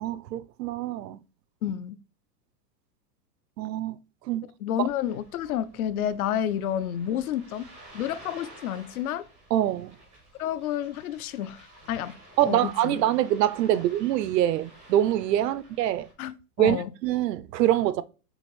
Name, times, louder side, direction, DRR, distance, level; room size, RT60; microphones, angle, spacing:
voice 1, 0.0-1.2 3.6-4.0 4.3-4.5 9.5-9.9 12.4-16.1 16.6-18.0, right 12 dB, 85° right, 0.6 m, -25 dB
voice 2, 1.6-2.0 4.6-7.7 7.9-9.2 10.4-13.0 13.7-13.8 16.2-16.9, left 10 dB, 65° left, 0.5 m, -30 dB
Ocean, 4.8-16.1, right 1 dB, 5° right, 0.4 m, -52 dB
6.4 x 2.6 x 3.1 m
supercardioid pair, 170°, 48 cm